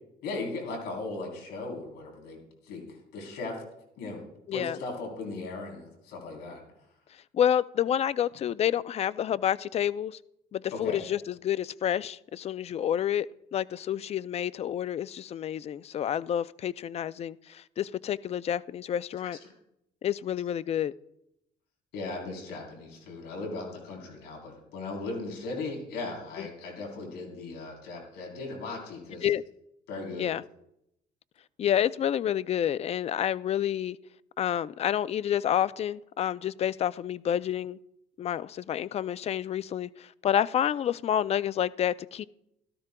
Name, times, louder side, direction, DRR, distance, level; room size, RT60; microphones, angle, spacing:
voice 1, 0.2-2.4 2.6-2.8 3.1-3.6 4.0-6.6 10.8-11.0 19.2-19.5 21.9-29.3 29.9-30.3, left 3 dB, 85° left, 3.6 m, -37 dB
voice 2, 4.5-4.8 7.3-10.2 10.5-13.3 13.5-19.4 20.0-20.9 26.4-26.5 29.2-29.4 30.2-30.4 31.6-34.0 34.4-37.8 38.2-42.2, left 10 dB, 40° left, 0.4 m, -29 dB
16.5 x 13.0 x 2.2 m
cardioid pair, 110°, 17 cm